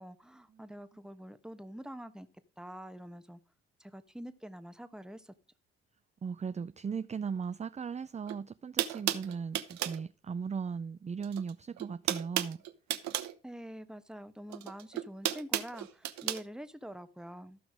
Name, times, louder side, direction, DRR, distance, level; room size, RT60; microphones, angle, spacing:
voice 1, 0.0-2.3 2.6-3.4 3.8-5.3 13.4-17.6, equal, ahead, 1.2 m, -46 dB
voice 2, 6.2-12.6, right 6 dB, 25° right, 0.5 m, -37 dB
sound 1, 8.3-8.4 8.8-10.0 11.2-11.5 11.8-13.3 14.5-16.4, right 13 dB, 70° right, 1.0 m, -33 dB
13.5 x 6.0 x 4.9 m
hypercardioid pair, 50°, 29 cm